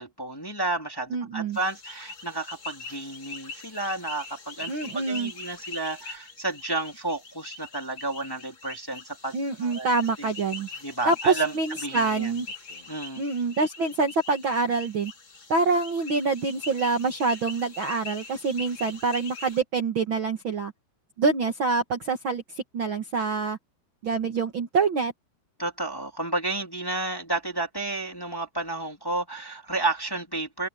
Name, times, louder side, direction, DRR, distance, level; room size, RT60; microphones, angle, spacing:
voice 1, 0.0-9.9 10.2-10.3 10.8-11.5 11.8-12.3 12.9-13.2 25.6-30.7, right 2 dB, 10° left, 1.8 m, -31 dB
voice 2, 1.1-1.6 4.7-5.3 9.3-10.7 11.0-12.5 13.2-15.1 15.5-20.7 21.2-22.4 22.7-23.6 24.0-25.1, right 4 dB, 80° right, 1.1 m, -26 dB
sound 1, 1.5-19.6, left 3 dB, 30° left, 4.0 m, -42 dB
omnidirectional pair, 4.9 m